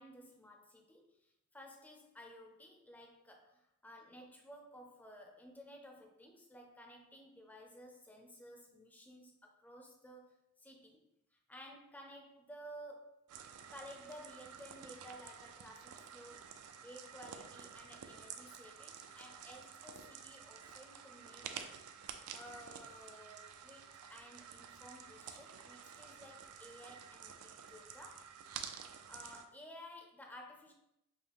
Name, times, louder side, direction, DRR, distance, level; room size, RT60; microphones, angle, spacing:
voice 1, 0.0-13.2 13.7-16.6 16.8-21.7 22.3-28.4 29.1-30.7, equal, 5° left, 1 dB, 0.5 m, -55 dB
sound 1, 13.3-29.4, right 7 dB, 70° right, 0.4 m, -51 dB
5.3 x 2.0 x 3.4 m, 0.83 s
head